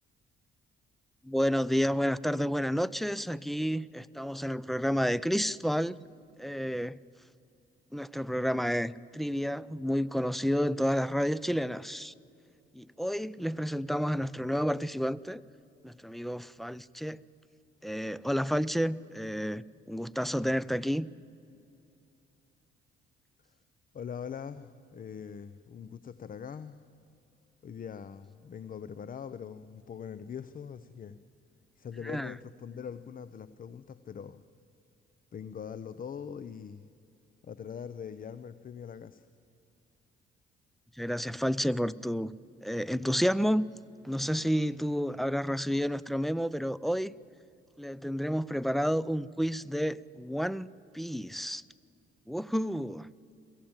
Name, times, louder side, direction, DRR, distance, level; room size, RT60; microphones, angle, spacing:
voice 1, 1.2-6.0 6.4-7.0 7.9-12.1 12.7-15.4 15.8-17.2 17.8-21.1 32.1-32.3 41.0-42.4 42.6-43.6 44.0-47.1 47.8-51.6 52.3-53.1, equal, ahead, 20 dB, 0.5 m, -30 dB
voice 2, 23.9-26.9 27.6-31.2 31.8-34.4 35.3-36.9 37.4-39.3, left 7 dB, 45° left, 14 dB, 0.8 m, -42 dB
23.0 x 15.0 x 8.9 m, 2.7 s
cardioid pair, 90°, 20 cm